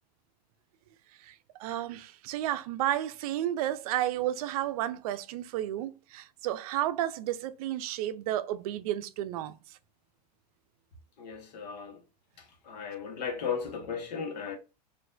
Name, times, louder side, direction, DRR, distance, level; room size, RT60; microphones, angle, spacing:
voice 1, 1.6-9.5, right 13 dB, 60° right, 0.5 m, -32 dB
voice 2, 11.2-12.0 12.4-14.6, left 6 dB, 80° left, 1.1 m, -36 dB
4.1 x 2.6 x 2.5 m
supercardioid pair, 145°, 21 cm